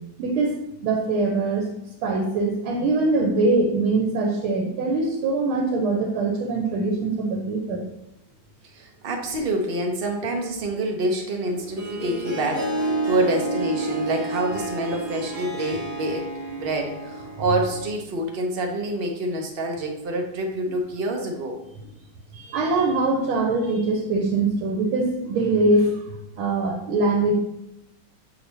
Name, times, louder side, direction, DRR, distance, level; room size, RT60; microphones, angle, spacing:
voice 1, 0.2-0.6 0.8-1.6 2.0-7.9 22.3-26.0 26.4-27.3, right 3 dB, 90° right, 2 dB, 1.7 m, -22 dB
voice 2, 8.7-21.6, right 1 dB, 45° right, 2 dB, 0.7 m, -27 dB
Harp, 11.4-18.0, right 2 dB, 70° right, 2.2 m, -30 dB
7.0 x 4.2 x 4.0 m, 0.85 s
omnidirectional pair, 2.3 m